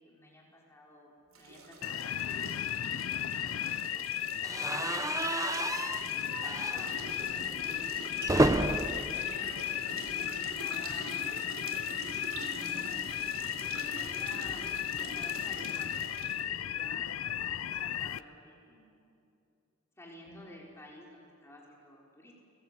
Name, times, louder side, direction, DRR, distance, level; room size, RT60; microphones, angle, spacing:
voice 1, 0.0-2.9 3.4-4.1 4.3-5.6 6.0-7.0 7.6-8.6 9.0-12.0 13.6-14.8 15.1-16.1 16.4-17.1 17.8-19.0 20.0-22.3, left 1 dB, 15° left, -3 dB, 4.6 m, -53 dB
sound 1, 1.3-16.4, right 3 dB, 80° right, 3.4 m, -46 dB
sound 2, 1.8-18.2, left 11 dB, 90° left, 0.6 m, -35 dB
sound 3, 4.4-10.5 10.8-11.0 11.2-11.3 12.6-14.9, right 2 dB, 15° right, 0.7 m, -33 dB
voice 2, 7.1-7.8 9.1-9.2 12.5-13.1 17.3-17.5 20.2-20.4, equal, 45° right, -1 dB, 4.7 m, -54 dB
30.0 x 20.5 x 8.3 m, 2.6 s
head